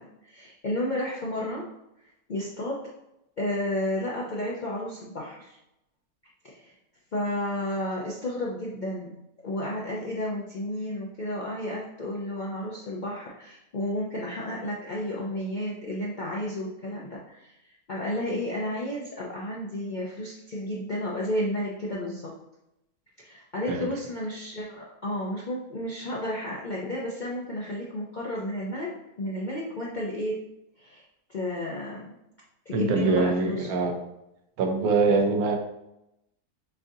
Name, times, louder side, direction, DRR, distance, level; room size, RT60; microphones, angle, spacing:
voice 1, 0.0-1.6 2.3-2.8 3.4-5.6 6.5-6.7 7.1-9.1 9.4-17.5 17.9-22.3 23.2-28.9 29.2-30.4 30.8-31.0 31.3-32.2 32.7-33.7, left 1 dB, 65° left, -4 dB, 0.4 m, -32 dB
voice 2, 32.7-34.0 34.6-35.6, right 3 dB, 75° right, 4 dB, 1.2 m, -24 dB
6.6 x 2.5 x 2.7 m, 0.87 s
omnidirectional pair, 1.6 m